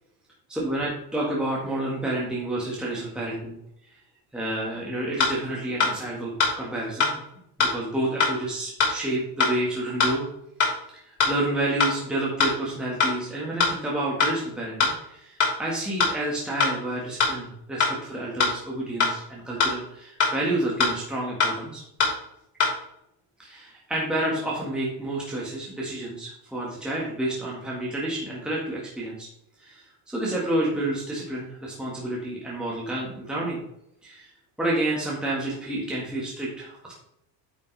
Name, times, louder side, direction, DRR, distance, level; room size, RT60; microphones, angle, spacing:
voice 1, 0.5-3.4 4.3-7.2 7.6-10.3 10.9-21.8 23.4-29.3 29.6-33.6 34.0-34.3 34.6-36.9, right 1 dB, ahead, -5 dB, 1.4 m, -29 dB
sound 1, 5.2-5.3 5.8-5.9 6.4-6.5 7.0-7.1 7.6-7.7 8.2-8.3 8.8-8.9 9.4-9.5 10.0-10.1 10.6-10.7 11.2-11.3 11.8-11.9 12.4-12.5 13.0-13.1 13.6-13.7 14.2-14.3 14.8-14.9 15.4-15.5 16.0-16.1 16.6-16.7 17.2-17.3 17.8-17.9 18.4-18.5 19.0-19.1 19.6-19.7 20.2-20.3 20.8-20.9 21.4-21.5 22.0-22.1 22.6-22.7, left 5 dB, 45° left, 3.1 m, -20 dB
9.4 x 5.4 x 3.2 m, 0.77 s
cardioid pair, 165°, 42 cm